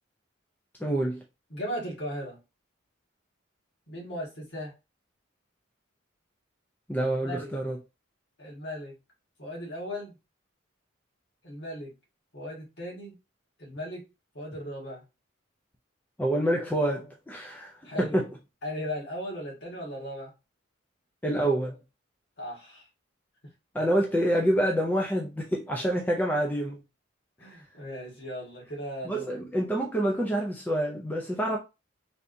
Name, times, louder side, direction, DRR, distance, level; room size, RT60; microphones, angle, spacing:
voice 1, 0.8-1.2 6.9-7.8 16.2-17.7 18.0-18.3 21.2-21.8 23.7-26.8 29.1-31.6, right 1 dB, 10° left, 0.4 m, -27 dB
voice 2, 1.5-2.4 3.9-4.7 7.2-7.5 8.4-9.0 9.4-10.2 11.4-11.9 12.3-13.1 13.6-14.1 14.3-15.0 17.8-18.3 18.6-20.3 22.4-22.9 27.4-29.4, equal, 55° left, 1.5 m, -37 dB
3.3 x 2.7 x 2.6 m
head